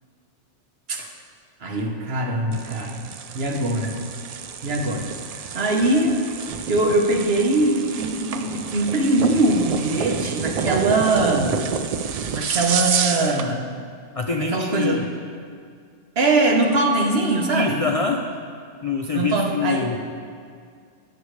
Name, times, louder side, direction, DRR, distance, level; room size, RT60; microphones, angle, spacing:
voice 1, 1.6-3.0 3.3-3.9 4.6-5.1 5.3-6.1 6.7-11.6 12.3-13.6 14.5-15.0 16.2-17.8 19.1-19.9, right 2 dB, 60° right, 1 dB, 1.3 m, -22 dB
sound 1, 2.5-13.5, right 6 dB, 80° right, 0.3 m, -29 dB
voice 2, 14.1-15.1 17.5-18.2 18.8-20.0, left 4 dB, 50° left, 2 dB, 0.4 m, -25 dB
18.0 x 6.7 x 3.2 m, 2.2 s
omnidirectional pair, 1.2 m